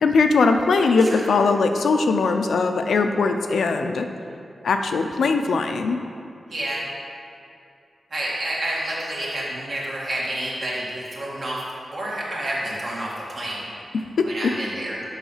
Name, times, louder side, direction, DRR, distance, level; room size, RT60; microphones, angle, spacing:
voice 1, 0.0-4.1 4.6-6.0 14.2-14.3, left 4 dB, 85° left, 6 dB, 0.5 m, -20 dB
voice 2, 6.5-6.8 8.1-11.6 11.9-13.6 14.2-15.0, right 1 dB, 55° right, -5 dB, 2.0 m, -29 dB
7.2 x 5.6 x 5.6 m, 2.5 s
wide cardioid pair, 100°, 0 cm